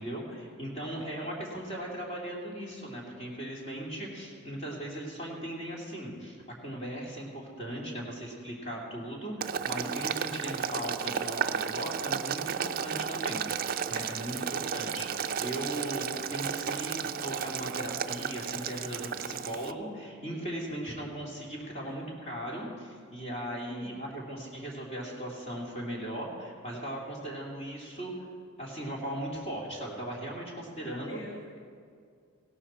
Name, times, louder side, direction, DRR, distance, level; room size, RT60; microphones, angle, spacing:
voice 1, 0.0-6.4 6.6-28.3 28.6-31.2, right 1 dB, 30° left, -3 dB, 2.7 m, -38 dB
Boiling, 9.4-19.7, right 7 dB, 45° right, 0.4 m, -33 dB
voice 2, 23.7-24.1 30.8-31.6, equal, 70° left, 0 dB, 1.3 m, -45 dB
16.5 x 12.0 x 4.4 m, 2.2 s
head